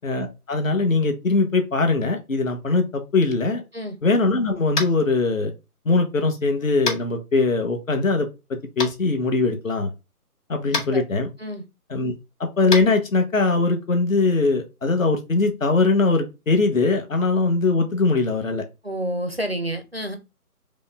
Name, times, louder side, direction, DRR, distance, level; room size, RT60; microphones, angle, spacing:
voice 1, 0.0-3.6 4.0-5.5 5.8-8.3 8.8-9.9 10.5-11.3 11.9-12.1 12.4-18.6, left 3 dB, 55° left, 1.2 m, -21 dB
Tap, 4.7-5.0 6.8-7.0 8.8-8.9 10.7-10.9 12.7-12.8, left 3 dB, 75° left, 2.1 m, -25 dB
voice 2, 18.8-20.2, right 1 dB, 45° right, 0.5 m, -29 dB
5.2 x 2.2 x 3.4 m
hypercardioid pair, 175°, 47 cm